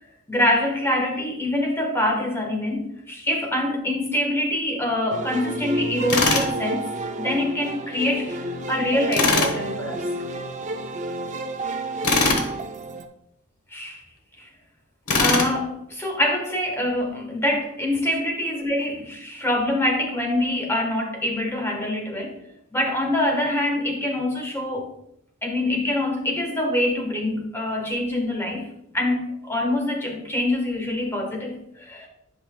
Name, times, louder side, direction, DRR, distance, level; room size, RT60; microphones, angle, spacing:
voice 1, 0.3-6.9 7.2-10.0 13.7-14.0 14.4-14.5 15.2-22.4 22.7-24.9 25.4-28.7 28.9-32.1, left 1 dB, 10° left, 1 dB, 1.2 m, -25 dB
sound 1, 5.1-13.1, right 2 dB, 35° right, 0.5 m, -30 dB
Tools, 6.1-6.5 9.1-9.5 12.0-12.5 15.1-15.5, left 3 dB, 85° left, 1.0 m, -20 dB
10.5 x 5.6 x 2.2 m, 0.76 s
head